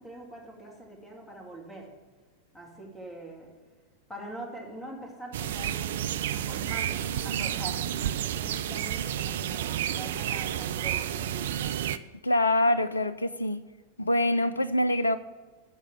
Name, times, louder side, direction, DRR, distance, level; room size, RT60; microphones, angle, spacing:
voice 1, 0.0-1.9 2.5-3.5 4.1-11.9, right 1 dB, 5° left, 2.5 m, -43 dB
sound 1, 5.3-12.0, right 11 dB, 60° right, 0.4 m, -31 dB
voice 2, 12.2-13.6 14.0-15.2, left 1 dB, 80° left, 0.4 m, -25 dB
13.0 x 4.7 x 7.0 m
figure-of-eight pair, 90°, 0 cm